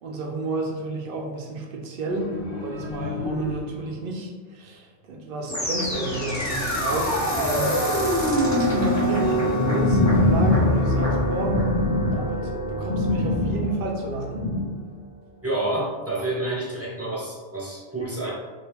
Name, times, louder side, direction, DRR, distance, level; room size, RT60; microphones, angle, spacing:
voice 1, 0.0-7.8 8.5-11.6 12.1-14.5, right 2 dB, 60° right, 0 dB, 0.7 m, -31 dB
sound 1, 2.1-4.1, left 3 dB, 50° left, 1.1 m, -33 dB
sound 2, 5.5-14.6, left 1 dB, 20° left, 0.6 m, -24 dB
sound 3, 9.4-14.7, left 1 dB, 75° left, 1.0 m, -25 dB
voice 2, 15.4-18.3, right 2 dB, 25° right, -5 dB, 0.3 m, -28 dB
3.3 x 2.6 x 3.0 m, 1.4 s
omnidirectional pair, 1.2 m